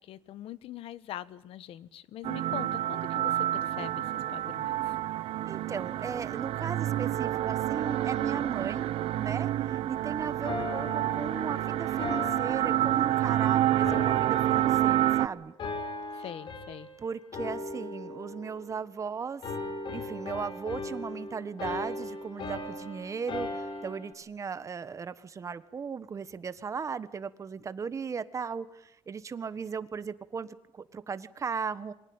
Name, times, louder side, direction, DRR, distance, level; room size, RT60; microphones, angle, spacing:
voice 1, 0.0-4.9 16.1-16.9, left 12 dB, 75° left, 16 dB, 1.2 m, -43 dB
sound 1, 2.2-15.3, right 13 dB, 80° right, 1.2 m, -28 dB
voice 2, 5.4-8.9 9.2-15.5 16.2-16.3 17.0-19.4 19.9-31.9, right 6 dB, 30° right, 13 dB, 1.4 m, -37 dB
sound 2, 10.4-13.4 13.8-15.2 15.6-17.0 17.3-19.0 19.4-24.1, left 2 dB, 55° left, 5.9 m, -38 dB
27.5 x 23.5 x 8.8 m, 0.77 s
cardioid pair, 135°, 10 cm